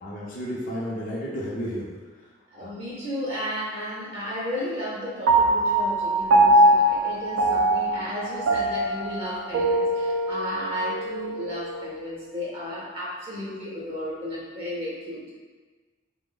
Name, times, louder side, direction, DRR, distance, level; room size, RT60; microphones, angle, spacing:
voice 1, 0.0-1.9 2.6-2.7, equal, 45° left, -5 dB, 0.5 m, -32 dB
voice 2, 2.5-15.4, equal, 30° right, -7 dB, 0.5 m, -33 dB
Piano, 5.3-12.0, right 1 dB, 90° right, 0.4 m, -22 dB
3.4 x 2.0 x 3.7 m, 1.4 s
head